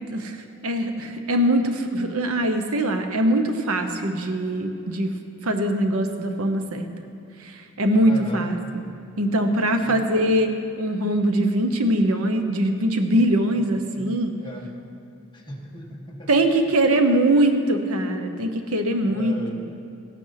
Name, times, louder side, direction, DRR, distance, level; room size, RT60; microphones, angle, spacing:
voice 1, 0.6-5.1 5.4-6.9 7.4-8.8 9.2-14.3 16.3-19.4, right 1 dB, 80° right, 6 dB, 1.0 m, -22 dB
voice 2, 8.0-8.5 9.8-10.0 13.5-13.6 13.9-14.8 15.3-16.3 18.7-19.7, equal, 20° left, -2 dB, 1.6 m, -38 dB
16.0 x 9.2 x 5.8 m, 2.6 s
head